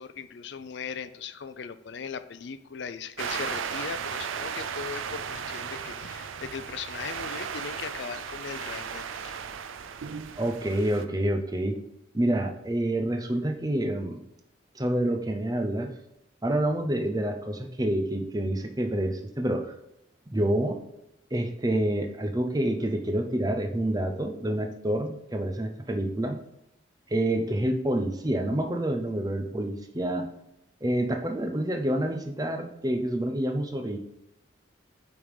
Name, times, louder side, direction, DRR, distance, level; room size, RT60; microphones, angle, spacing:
voice 1, 0.0-9.4, left 6 dB, 60° left, 13 dB, 0.4 m, -39 dB
sound 1, 3.2-11.0, right 7 dB, 80° right, 0.5 m, -35 dB
voice 2, 10.4-11.8 12.1-14.2 14.8-15.9 16.4-19.7 20.3-20.8 21.3-26.4 27.1-30.3 30.8-34.0, right 1 dB, 20° right, 5 dB, 0.6 m, -28 dB
8.7 x 3.6 x 4.8 m, 0.83 s
head